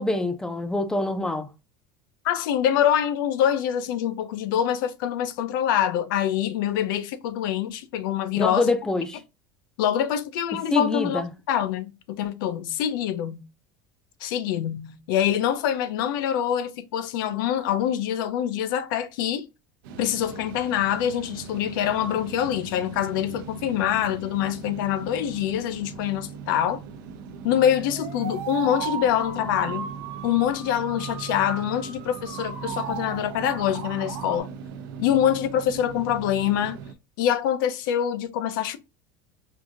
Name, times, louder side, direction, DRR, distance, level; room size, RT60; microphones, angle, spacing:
voice 1, 0.0-1.5 8.4-9.2 10.7-11.3, left 2 dB, 5° left, 0.4 m, -25 dB
voice 2, 2.2-8.7 9.8-11.2 11.5-13.4 14.2-19.5 20.0-26.8 27.4-29.9 30.2-34.5 35.0-36.8 37.2-38.8, left 10 dB, 85° left, 0.6 m, -25 dB
sound 1, 19.8-36.9, right 6 dB, 90° right, 0.6 m, -40 dB
sound 2, 27.5-34.4, right 8 dB, 60° right, 0.9 m, -37 dB
4.7 x 2.6 x 2.4 m
cardioid pair, 165°, 11 cm